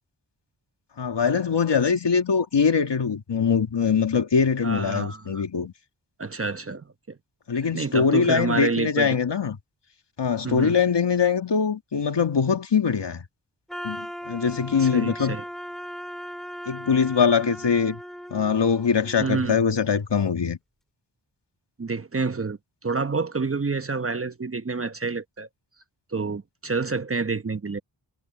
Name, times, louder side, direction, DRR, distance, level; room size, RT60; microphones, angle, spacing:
voice 1, 1.0-5.7 7.5-9.6 10.2-13.2 13.8-15.4 16.7-18.0 18.3-20.6, left 6 dB, 65° left, 2.2 m, -22 dB
voice 2, 4.6-5.4 6.2-7.2 7.7-9.1 10.4-10.7 14.8-15.4 19.2-19.6 21.8-25.5 26.1-27.8, right 4 dB, 30° right, 1.0 m, -28 dB
sound 1, 13.7-19.6, equal, ahead, 4.6 m, -38 dB
cardioid pair, 45°, 46 cm